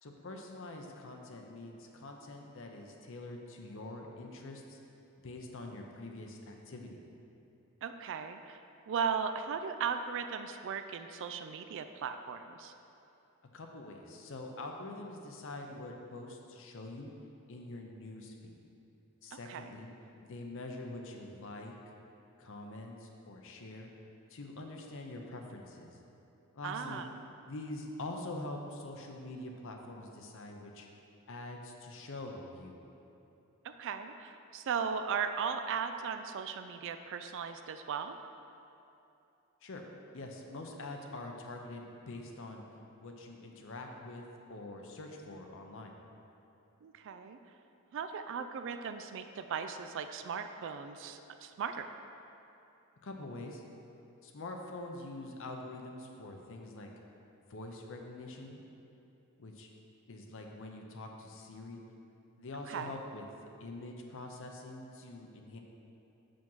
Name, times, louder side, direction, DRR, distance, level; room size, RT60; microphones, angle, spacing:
voice 1, 0.0-4.8 5.2-7.0 13.5-17.1 17.5-18.6 19.2-19.9 20.2-21.7 22.4-23.9 24.3-26.0 26.5-27.0 27.5-30.9 31.3-32.8 39.6-39.8 40.1-42.6 43.0-44.2 44.5-45.9 53.0-53.6 54.2-56.9 57.5-58.6 59.4-59.7 60.1-61.8 62.4-63.3 63.6-65.6, left 2 dB, 65° left, 2 dB, 0.7 m, -45 dB
voice 2, 7.8-8.6 8.9-12.7 19.3-19.7 26.6-27.1 33.8-38.2 46.8-47.4 47.9-51.9 62.7-63.0, right 6 dB, 60° right, 8 dB, 0.3 m, -37 dB
6.1 x 5.1 x 5.5 m, 2.9 s
head